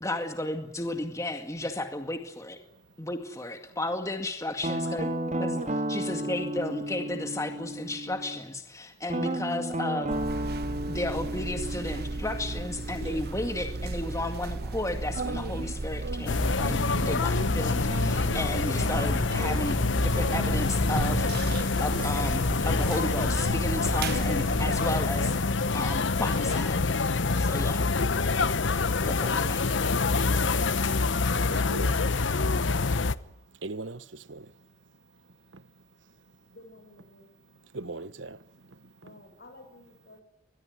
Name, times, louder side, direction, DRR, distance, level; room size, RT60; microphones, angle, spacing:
voice 1, 0.0-2.6 3.0-5.1 5.4-10.1 10.9-19.8 20.0-25.3 25.7-26.7 27.4-27.8 29.0-29.6, left 2 dB, 15° left, 2.1 m, -33 dB
Guitar, 4.6-8.4 9.1-13.8, right 1 dB, 40° right, 2.2 m, -33 dB
sound 1, 10.1-24.9, right 2 dB, 55° right, 1.0 m, -34 dB
sound 2, 16.3-33.2, left 3 dB, 80° left, 1.0 m, -26 dB
voice 2, 26.3-26.6 27.1-27.2 27.5-27.9 31.3-32.0 33.6-34.5 37.7-38.4, right 3 dB, 90° right, 1.0 m, -39 dB
voice 3, 36.5-37.3 39.0-40.2, left 1 dB, 60° left, 7.7 m, -52 dB
23.5 x 21.5 x 9.4 m
head